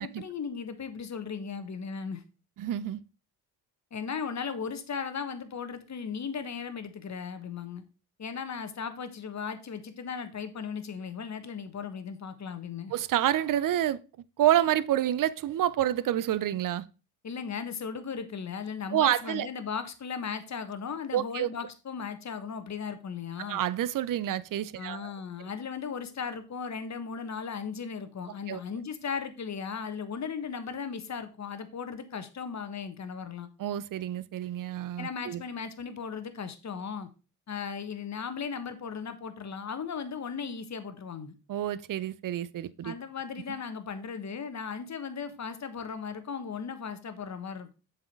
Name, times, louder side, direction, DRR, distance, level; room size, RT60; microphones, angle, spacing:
voice 1, 0.0-2.2 3.9-7.8 8.2-12.9 17.2-23.6 24.8-33.5 35.0-37.1 37.5-41.4 42.8-47.7, left 6 dB, 40° left, 1.3 m, -37 dB
voice 2, 2.6-3.0 12.9-14.0 14.4-16.9 18.9-19.5 21.1-21.5 23.5-25.1 28.5-28.6 33.6-35.4 41.5-42.9, right 12 dB, 50° right, 0.7 m, -28 dB
7.4 x 4.9 x 4.6 m
supercardioid pair, 60°, 43 cm